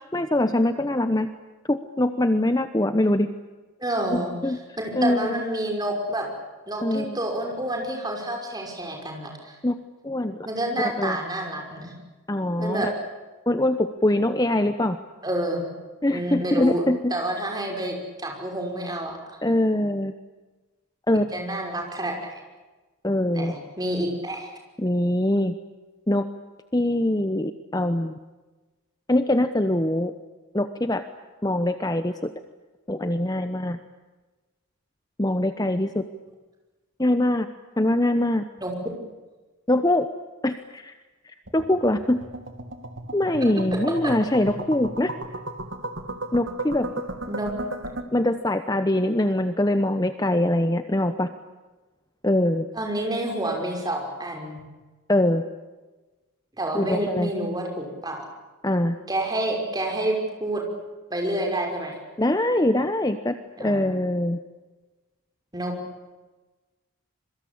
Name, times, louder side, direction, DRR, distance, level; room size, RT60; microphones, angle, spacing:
voice 1, 0.1-1.3 1.7-3.3 4.1-4.6 4.9-5.4 6.8-7.2 9.6-9.7 10.0-10.5 10.8-11.2 12.3-12.9 13.5-15.0 16.0-17.1 19.4-20.1 21.1-21.3 23.0-23.5 24.8-25.5 26.1-26.2 26.7-28.2 29.1-30.1 30.5-31.0 31.4-32.3 32.9-33.8 35.2-36.0 37.0-37.5 37.8-38.4 39.7-40.1 40.4-40.9 41.5-42.2 43.1-45.1 46.3-46.9 48.1-51.3 52.2-52.7 55.1-55.4 56.7-57.3 58.6-59.0 62.2-63.3 63.6-64.4, left 1 dB, 15° left, 9 dB, 0.9 m, -23 dB
voice 2, 3.8-6.3 6.7-9.6 10.4-11.9 12.6-12.9 15.2-15.6 16.1-16.8 17.1-19.4 21.3-22.4 23.3-24.5 38.6-38.7 44.0-44.1 47.3-47.5 52.7-54.6 56.6-58.2 59.1-60.6 61.1-62.0 63.6-63.9 65.5-65.7, right 1 dB, 20° right, 2 dB, 5.9 m, -28 dB
sound 1, 41.5-48.0, right 2 dB, 60° right, 2.6 m, -35 dB
26.5 x 23.5 x 8.7 m, 1.2 s
head